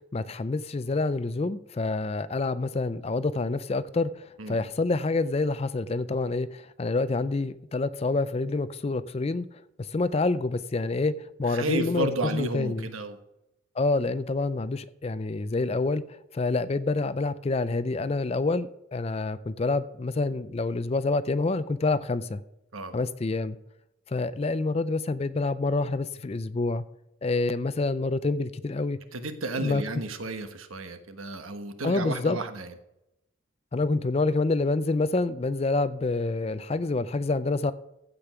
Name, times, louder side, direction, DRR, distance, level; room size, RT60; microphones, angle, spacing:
voice 1, 0.1-9.5 9.8-12.1 12.3-12.9 13.8-22.4 22.9-23.6 24.1-26.8 27.2-29.0 29.6-29.8 31.8-32.4 33.7-37.7, left 3 dB, 30° left, 0.4 m, -27 dB
voice 2, 11.5-13.2 22.7-23.0 29.1-32.7, right 2 dB, 85° right, 1.3 m, -32 dB
15.5 x 5.2 x 5.9 m
head